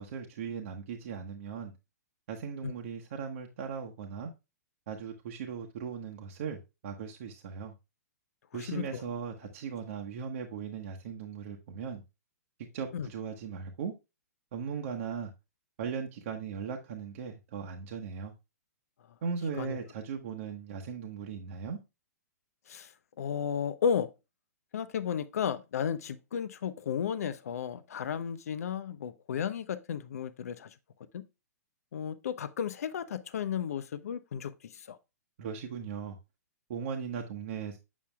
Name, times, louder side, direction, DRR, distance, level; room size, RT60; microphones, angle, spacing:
voice 1, 0.0-1.7 2.3-4.3 4.9-7.7 8.5-12.0 12.7-13.9 14.5-15.3 15.8-18.3 19.2-21.8 35.4-36.2 36.7-37.8, right 6 dB, 55° right, 1.1 m, -38 dB
voice 2, 8.5-9.0 12.9-13.1 19.6-19.8 22.7-22.9 23.2-24.1 24.7-30.7 31.1-31.2 31.9-35.0, left 7 dB, 65° left, 0.7 m, -33 dB
7.3 x 6.9 x 2.2 m
hypercardioid pair, 120°, 9 cm